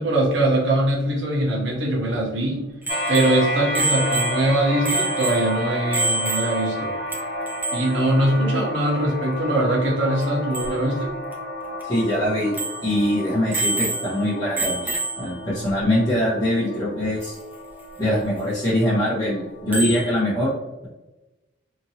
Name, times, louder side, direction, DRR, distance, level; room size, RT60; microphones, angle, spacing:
voice 1, 0.0-2.6 3.1-6.9 7.7-11.1, right 1 dB, 65° right, -2 dB, 0.9 m, -22 dB
Bicycle bell, 2.8-6.8 7.1-7.2 7.5-8.0 10.2-10.3 10.5-10.7 11.3-11.4 11.8-11.9 12.5-12.9 13.5-14.3 14.6-15.3 17.2-17.3 19.7-20.1, right 3 dB, 10° right, 0.5 m, -27 dB
sound 1, 2.9-20.1, equal, 55° left, 0.6 m, -31 dB
voice 2, 11.9-12.5 12.8-17.3 18.0-20.5, left 1 dB, 20° left, -11 dB, 0.9 m, -23 dB
2.8 x 2.6 x 2.8 m, 1.1 s
head